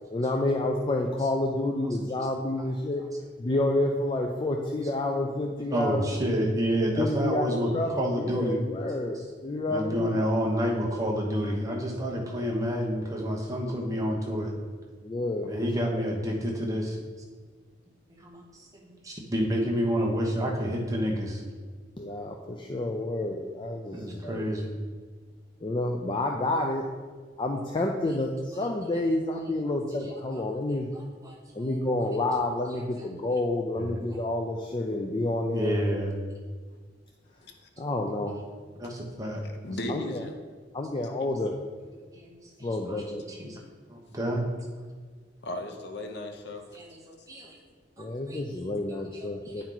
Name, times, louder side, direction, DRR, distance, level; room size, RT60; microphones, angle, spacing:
voice 1, 0.1-3.0 3.4-6.3 7.0-10.2 15.0-15.5 15.9-16.0 22.0-24.5 25.6-26.8 27.4-30.9 31.5-36.1 37.8-38.4 39.9-40.2 40.7-41.5 42.6-43.2 48.0-49.6, left 2 dB, 25° left, 2 dB, 0.4 m, -29 dB
voice 2, 5.7-8.6 9.7-14.5 15.5-17.0 18.2-21.4 23.9-24.7 30.3-30.4 30.9-31.8 33.0-33.1 33.8-34.0 35.5-36.1 38.8-39.4 42.1-43.6 43.9-44.4 46.7-47.6 48.0-48.4 49.1-49.3 49.6-49.7, equal, 20° right, -2 dB, 1.1 m, -29 dB
voice 3, 39.6-40.3 45.4-46.6, left 1 dB, 65° left, 5 dB, 0.8 m, -35 dB
9.6 x 4.5 x 3.9 m, 1.5 s
head